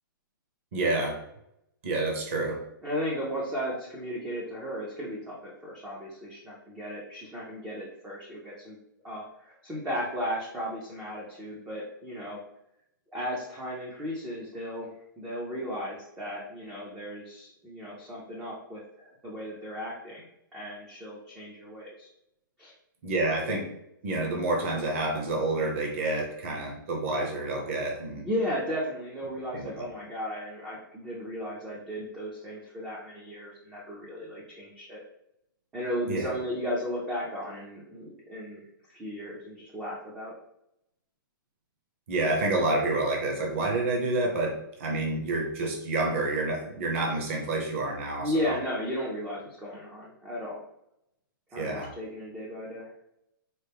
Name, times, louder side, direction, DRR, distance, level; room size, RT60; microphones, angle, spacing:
voice 1, 0.7-1.2 1.8-2.6 23.0-23.7 24.0-28.2 29.5-29.9 36.1-36.3 42.1-48.6 51.6-51.9, right 2 dB, 35° right, 1 dB, 0.8 m, -28 dB
voice 2, 2.8-8.8 9.0-12.4 13.1-14.9 15.2-20.3 20.5-22.1 22.6-22.7 28.2-35.0 35.7-40.3 48.2-50.6 51.5-52.9, equal, 5° right, -5 dB, 0.4 m, -35 dB
4.2 x 2.0 x 3.3 m, 0.79 s
hypercardioid pair, 170°, 12 cm